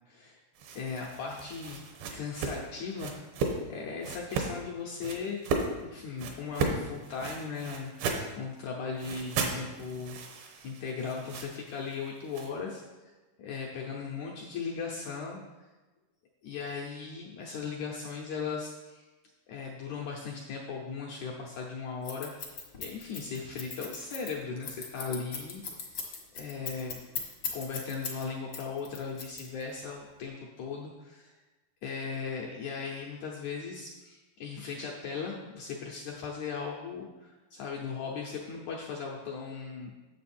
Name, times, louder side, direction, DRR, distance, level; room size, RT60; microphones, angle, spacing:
voice 1, 0.1-0.4 0.8-1.8 2.1-3.1 3.7-10.2 10.6-12.8 13.4-15.4 16.4-19.1 19.5-22.3 22.8-25.9 26.3-27.0 27.5-31.3 31.8-39.9, left 5 dB, 80° left, -2 dB, 1.7 m, -38 dB
sound 1, 0.6-3.6 4.0-4.5 5.0-5.7 6.2-8.3 9.0-12.5, right 4 dB, 80° right, 2.8 m, -35 dB
Scissors, 22.0-28.2 28.5-29.8, left 6 dB, 60° left, 1.1 m, -38 dB
9.2 x 7.2 x 4.3 m, 1.2 s
omnidirectional pair, 4.4 m